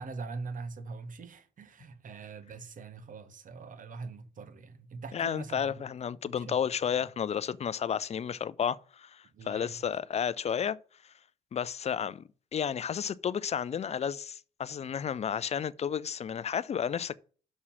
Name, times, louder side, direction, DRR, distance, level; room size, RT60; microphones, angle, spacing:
voice 1, 0.0-5.8 6.3-6.6 6.9-7.0 9.3-9.8, right 4 dB, 45° right, 1.3 m, -43 dB
voice 2, 5.1-10.8 11.5-12.2 12.5-17.2, left 8 dB, 35° left, 0.5 m, -32 dB
6.3 x 5.5 x 6.0 m
hypercardioid pair, 50°, 19 cm